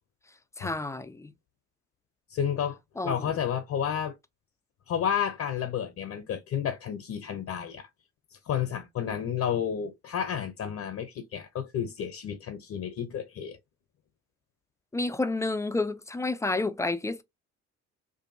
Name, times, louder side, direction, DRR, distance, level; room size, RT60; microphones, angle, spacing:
voice 1, 0.6-1.3 3.0-3.3 14.9-17.2, left 2 dB, 10° left, 0.4 m, -30 dB
voice 2, 2.3-2.8 3.0-4.1 4.9-7.9 8.5-13.6, left 8 dB, 50° left, 0.7 m, -31 dB
2.6 x 2.5 x 2.6 m
hypercardioid pair, 50°, 34 cm